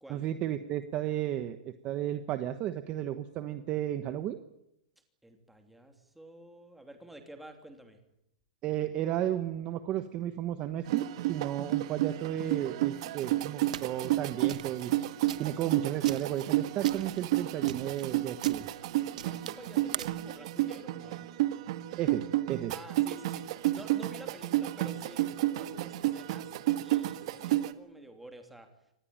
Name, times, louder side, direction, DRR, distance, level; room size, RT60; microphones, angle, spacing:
voice 1, 0.1-4.4 8.6-14.9 15.4-18.7 22.0-22.7, right 12 dB, 25° right, 10 dB, 1.1 m, -33 dB
voice 2, 5.2-8.0 19.1-21.3 22.7-28.7, right 1 dB, ahead, 5 dB, 2.9 m, -50 dB
sound 1, 10.9-27.7, right 15 dB, 45° right, 1.5 m, -31 dB
sound 2, 13.7-20.3, right 10 dB, 70° right, 1.3 m, -44 dB
26.0 x 20.0 x 8.9 m, 0.81 s
hypercardioid pair, 165°, 4 cm